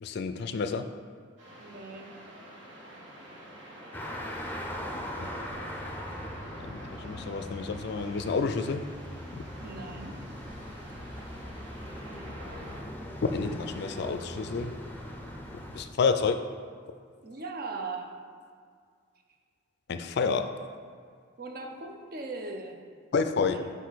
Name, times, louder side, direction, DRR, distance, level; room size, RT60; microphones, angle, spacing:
voice 1, 0.0-0.9 5.2-5.3 6.6-8.8 9.3-9.4 13.3-14.7 15.7-16.4 19.9-20.5 23.1-23.6, left 5 dB, 55° left, 8 dB, 0.3 m, -29 dB
sound 1, 1.4-12.8, right 1 dB, 65° right, 1.6 m, -48 dB
voice 2, 1.6-2.2 9.6-10.2 17.2-18.1 21.4-22.8 23.5-23.7, right 3 dB, 50° right, 3 dB, 0.7 m, -39 dB
sound 2, 3.9-15.8, left 1 dB, 10° left, 0.6 m, -40 dB
6.5 x 5.0 x 4.0 m, 2.1 s
head